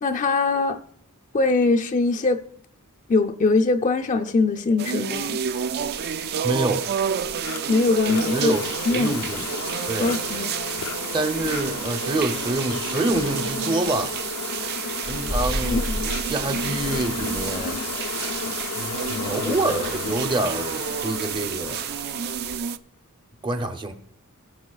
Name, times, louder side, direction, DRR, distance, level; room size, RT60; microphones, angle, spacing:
voice 1, 0.0-0.8 1.3-2.4 3.1-5.4 7.7-8.5 8.9-9.1 10.0-10.5, left 3 dB, 35° left, 0.5 m, -21 dB
sound 1, 4.8-22.8, right 9 dB, 45° right, 0.3 m, -30 dB
Insect, 5.2-22.6, left 5 dB, 80° left, 0.6 m, -33 dB
voice 2, 6.4-6.9 8.1-9.5 9.9-10.2 11.1-14.1 15.1-17.8 19.3-21.8 23.4-23.9, right 2 dB, 20° right, 0.7 m, -27 dB
sound 2, 15.0-20.3, equal, 65° right, 3.9 m, -34 dB
18.0 x 6.9 x 2.4 m
head